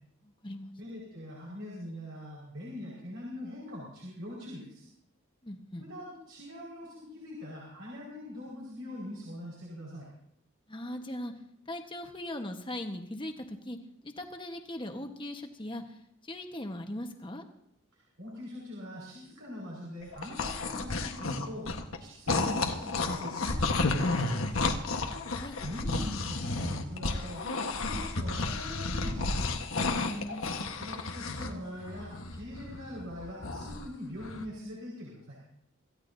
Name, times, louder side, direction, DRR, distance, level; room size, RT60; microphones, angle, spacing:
voice 1, 0.2-0.7 5.4-5.9 10.7-11.3 11.7-13.8 14.0-17.4 25.4-25.5 30.0-30.7, left 1 dB, 25° left, 5 dB, 1.2 m, -39 dB
voice 2, 0.8-4.9 5.8-10.1 17.9-21.7 22.0-24.8 25.6-29.6 30.7-35.4, left 1 dB, 70° right, -4 dB, 4.9 m, -43 dB
sound 1, 20.0-22.0 22.3-31.5 31.8-33.9 34.2-34.5, left 3 dB, 75° left, 1.3 m, -32 dB
26.0 x 15.0 x 2.7 m, 0.74 s
head